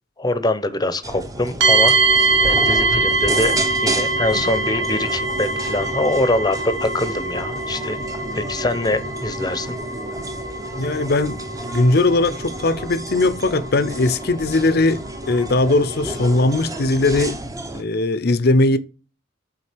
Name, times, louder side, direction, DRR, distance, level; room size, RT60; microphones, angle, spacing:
voice 1, 0.2-1.9 2.4-8.0 8.3-9.8, left 2 dB, 20° left, 0.8 m, -23 dB
sound 1, 1.0-17.8, right 1 dB, 20° right, 0.9 m, -31 dB
sound 2, 1.6-17.3, right 3 dB, 75° right, 1.4 m, -24 dB
voice 2, 10.8-11.4 11.7-17.4 17.7-18.8, left 2 dB, 55° left, 0.7 m, -19 dB
8.7 x 3.9 x 5.1 m
head